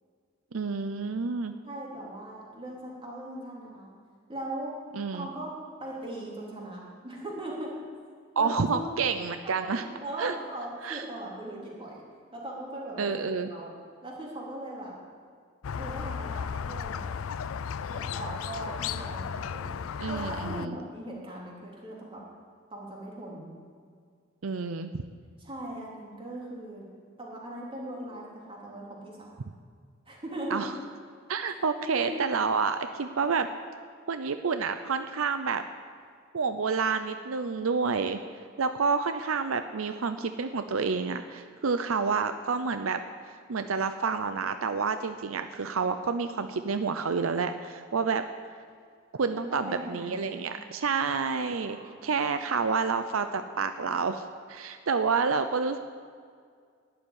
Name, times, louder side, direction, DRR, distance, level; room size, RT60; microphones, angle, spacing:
voice 1, 0.5-1.5 4.9-5.3 8.4-9.8 10.2-10.3 10.8-11.1 13.0-13.5 20.0-20.8 24.4-25.0 30.5-30.7 31.3-33.5 34.1-35.6 36.3-38.2 38.6-43.0 43.2-48.2 49.1-51.8 52.0-54.2 54.5-55.8, right 5 dB, 90° right, 9 dB, 0.6 m, -29 dB
voice 2, 1.6-3.9 4.3-4.7 5.1-5.5 5.8-7.7 8.4-8.9 9.4-12.0 12.3-13.7 14.0-15.0 15.8-17.1 17.9-19.8 20.1-22.2 22.7-23.6 25.4-26.9 27.2-29.4 30.1-30.7 31.9-32.2 49.3-50.6 51.7-52.1 52.5-52.6, right 1 dB, 25° right, -4 dB, 3.7 m, -39 dB
Squeak, 15.6-20.7, left 7 dB, 90° left, 0.4 m, -34 dB
11.5 x 8.0 x 9.9 m, 2.1 s
head